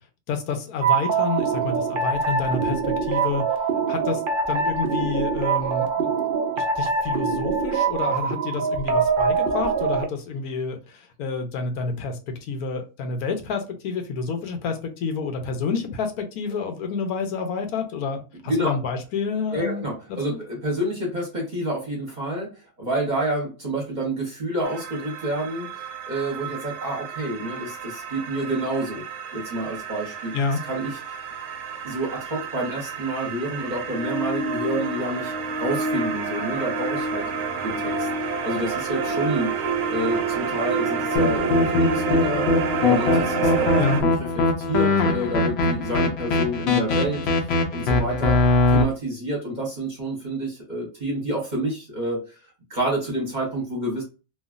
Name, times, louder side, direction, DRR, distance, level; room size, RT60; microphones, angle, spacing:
voice 1, 0.3-3.4 3.9-4.2 4.5-6.1 6.6-19.8 20.1-20.4 30.3-30.6 43.8-44.0, left 4 dB, 85° left, 1.2 m, -29 dB
sound 1, 0.8-10.1, right 5 dB, 80° right, 0.4 m, -24 dB
voice 2, 19.5-29.0 29.3-30.3 30.6-31.0 31.8-35.3 35.6-37.2 37.6-38.1 38.4-39.5 39.9-42.5 42.8-44.1 44.6-47.2 47.7-48.4 48.7-52.2 52.7-54.0, right 1 dB, 35° right, 0.9 m, -28 dB
sound 2, 24.6-44.0, right 4 dB, 65° right, 0.8 m, -29 dB
sound 3, 41.1-48.8, left 3 dB, 65° left, 0.7 m, -21 dB
3.0 x 2.3 x 2.4 m
omnidirectional pair, 1.6 m